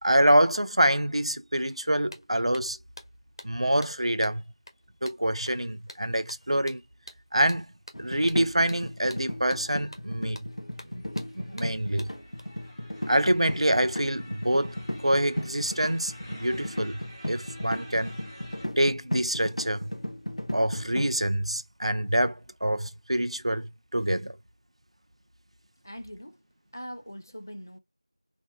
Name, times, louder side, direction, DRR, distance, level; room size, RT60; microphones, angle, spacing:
voice 1, 0.0-2.8 3.4-4.4 5.0-6.8 7.3-7.7 8.0-10.5 10.8-11.0 11.3-12.1 13.1-14.8 15.0-17.0 17.3-18.1 18.8-19.9 20.5-24.4, right 1 dB, 75° right, 0.5 m, -26 dB
sound 1, 1.7-1.8 2.1-12.4, equal, 55° left, 0.9 m, -49 dB
sound 2, 7.9-21.1, left 1 dB, 85° left, 0.8 m, -36 dB
sound 3, 10.5-18.7, equal, 10° right, 0.7 m, -50 dB
voice 2, 25.8-26.4 26.7-27.8, equal, 35° left, 0.5 m, -41 dB
3.1 x 2.5 x 2.4 m
figure-of-eight pair, 175°, 3 cm